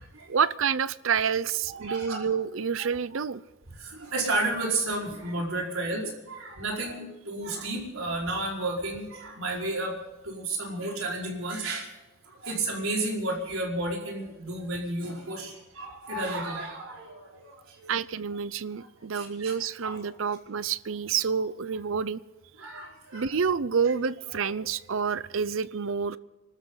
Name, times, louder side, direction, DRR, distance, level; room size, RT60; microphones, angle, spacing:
voice 1, 0.3-3.4 17.9-22.2 23.1-26.2, right 6 dB, 70° right, 18 dB, 0.6 m, -28 dB
voice 2, 1.7-2.2 3.7-10.0 10.2-11.9 12.2-17.9 18.8-18.9 19.1-19.5 19.8-20.0 22.6-23.3 24.4-24.5, right 2 dB, 85° right, -1 dB, 4.9 m, -32 dB
26.5 x 13.0 x 3.9 m, 1.2 s
head